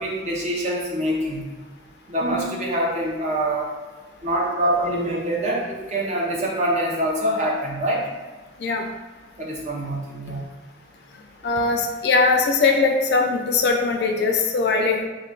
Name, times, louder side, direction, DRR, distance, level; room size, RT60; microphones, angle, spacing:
voice 1, 0.0-1.4 2.1-3.7 4.2-8.1 9.4-10.4, right 1 dB, 35° right, -3 dB, 0.5 m, -25 dB
voice 2, 11.4-15.0, left 4 dB, 55° left, 2 dB, 0.3 m, -20 dB
2.3 x 2.2 x 3.6 m, 1.3 s
head